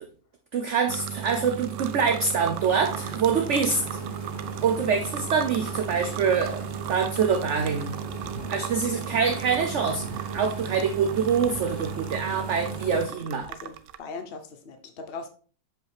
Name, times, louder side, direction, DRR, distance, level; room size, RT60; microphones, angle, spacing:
voice 1, 0.5-4.0 4.6-6.6 6.9-7.9 8.5-13.5, right 6 dB, 55° right, 4 dB, 0.9 m, -25 dB
sound 1, 0.9-14.0, right 10 dB, 80° right, 1.2 m, -35 dB
sound 2, 2.6-13.0, equal, 15° right, 2.3 m, -40 dB
voice 2, 13.5-15.3, left 4 dB, 55° left, 6 dB, 0.6 m, -39 dB
7.4 x 5.3 x 3.4 m, 0.40 s
omnidirectional pair, 1.9 m